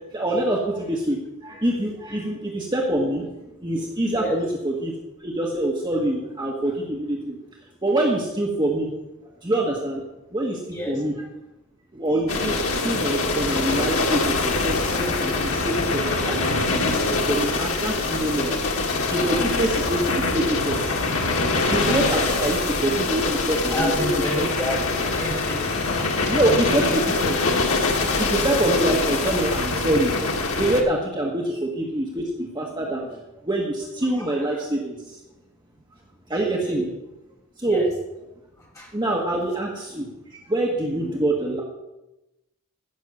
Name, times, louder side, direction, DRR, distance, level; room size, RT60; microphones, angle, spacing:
voice 1, 0.1-3.3 3.6-4.9 5.2-7.4 7.8-8.9 9.4-10.0 10.3-11.1 11.9-16.5 16.8-20.9 21.7-23.9 24.4-24.5 26.2-27.4 28.2-30.1 30.6-35.2 36.3-36.9 37.6-37.8 38.9-40.1 40.5-41.6, right 1 dB, 20° right, -2 dB, 1.4 m, -25 dB
voice 2, 4.1-4.4 10.7-11.0 22.4-22.5 22.8-22.9 23.7-25.6 34.2-34.6 36.6-36.8 37.6-37.9 38.6-38.9, equal, 15° left, -3 dB, 3.3 m, -31 dB
sound 1, 12.3-30.8, left 3 dB, 70° left, 1.6 m, -24 dB
15.5 x 6.3 x 6.5 m, 0.97 s
head